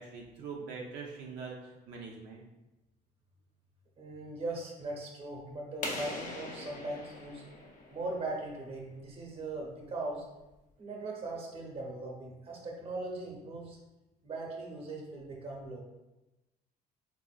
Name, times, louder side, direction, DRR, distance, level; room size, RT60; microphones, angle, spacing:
voice 1, 0.0-2.4, right 5 dB, 80° right, -1 dB, 0.5 m, -43 dB
voice 2, 4.0-7.4 7.9-10.2 10.8-13.8 14.2-15.8, right 2 dB, 35° right, -1 dB, 0.9 m, -39 dB
sound 1, 5.8-8.5, left 2 dB, 45° left, 0.6 m, -41 dB
3.8 x 2.6 x 2.4 m, 1.0 s
cardioid pair, 110°, 17 cm